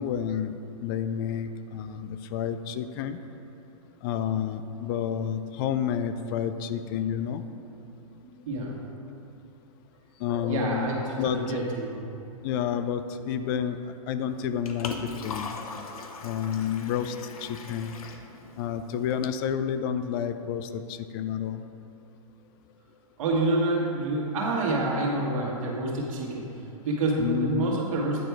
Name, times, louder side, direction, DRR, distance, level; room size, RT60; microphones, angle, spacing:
voice 1, 0.0-3.2 4.0-7.4 10.2-10.9 11.2-11.6 12.4-13.8 14.1-15.5 16.2-17.2 17.4-17.9 18.6-21.6 27.2-27.8, left 8 dB, 40° left, 10 dB, 0.4 m, -30 dB
voice 2, 8.5-8.8 10.5-12.0 23.2-26.5 26.8-28.2, right 2 dB, 65° right, -2 dB, 1.7 m, -27 dB
Liquid, 14.3-19.3, left 4 dB, 80° left, 0.8 m, -40 dB
9.0 x 4.4 x 4.7 m, 2.8 s
hypercardioid pair, 135°, 18 cm